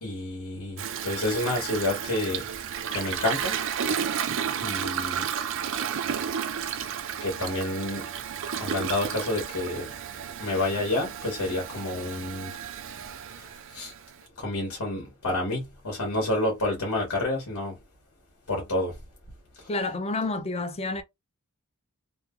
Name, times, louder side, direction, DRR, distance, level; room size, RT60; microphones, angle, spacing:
voice 1, 0.0-2.5 2.9-3.8 4.6-5.3 7.2-8.1 8.6-9.9 10.4-12.5 13.3-13.9 14.4-17.7 18.5-18.9, left 2 dB, 70° left, 1.3 m, -29 dB
Toilet flush, 0.8-14.2, right 8 dB, 60° right, 0.4 m, -32 dB
voice 2, 19.7-21.0, left 2 dB, 25° left, 0.5 m, -29 dB
3.0 x 2.8 x 2.5 m
head